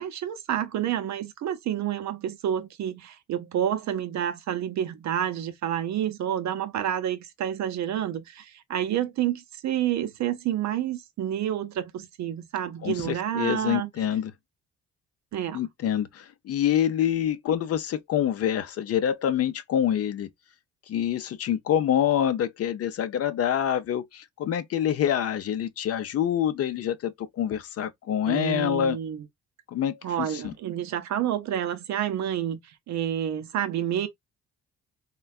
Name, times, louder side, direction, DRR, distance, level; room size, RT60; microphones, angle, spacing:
voice 1, 0.0-13.9 15.3-15.6 28.3-29.3 30.0-32.6 32.9-34.1, right 10 dB, 65° right, 0.6 m, -29 dB
voice 2, 12.8-14.3 15.5-20.3 20.9-29.0 29.7-30.5, left 10 dB, 55° left, 0.5 m, -26 dB
3.3 x 2.2 x 2.2 m
cardioid pair, 90°, 30 cm